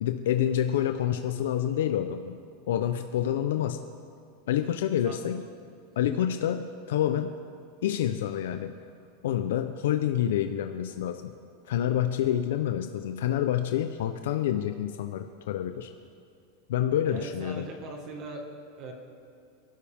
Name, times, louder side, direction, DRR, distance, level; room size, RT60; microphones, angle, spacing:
voice 1, 0.0-2.4 2.7-3.8 4.5-5.4 6.0-7.3 7.8-8.7 9.2-11.3 11.6-15.9 16.7-17.6, left 10 dB, 70° left, 7 dB, 0.7 m, -28 dB
voice 2, 17.1-18.9, right 2 dB, 30° right, 2 dB, 1.7 m, -40 dB
27.5 x 12.0 x 3.6 m, 2.4 s
supercardioid pair, 175°, 0 cm